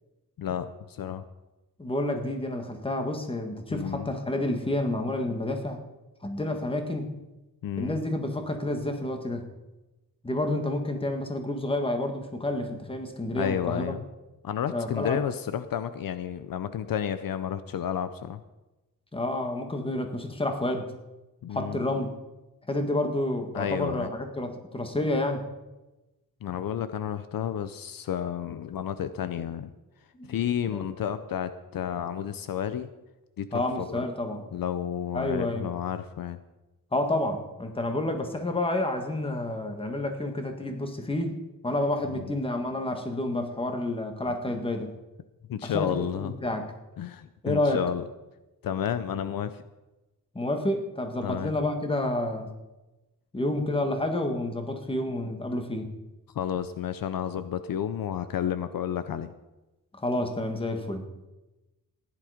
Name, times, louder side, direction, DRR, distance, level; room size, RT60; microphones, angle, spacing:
voice 1, 0.4-1.2 3.7-4.1 7.6-8.0 13.3-14.0 14.4-18.4 21.4-21.9 23.5-24.1 26.4-29.7 30.3-32.9 33.4-34.0 34.5-36.4 42.1-42.3 45.5-46.4 47.0-48.0 48.6-49.6 51.2-51.5 56.3-59.3, left 9 dB, 65° left, 12 dB, 0.7 m, -31 dB
voice 2, 1.8-5.8 6.2-7.1 7.8-9.4 10.2-13.9 14.7-15.2 19.1-20.9 21.5-22.1 22.7-25.4 30.2-30.3 30.7-30.8 33.5-34.4 35.1-35.7 36.9-41.4 41.6-44.9 45.6-45.9 46.2-46.7 47.4-47.8 50.3-52.5 53.3-55.9 60.0-61.0, left 1 dB, 15° left, 5 dB, 1.7 m, -29 dB
15.5 x 10.5 x 5.1 m, 1.0 s
wide cardioid pair, 145°, 36 cm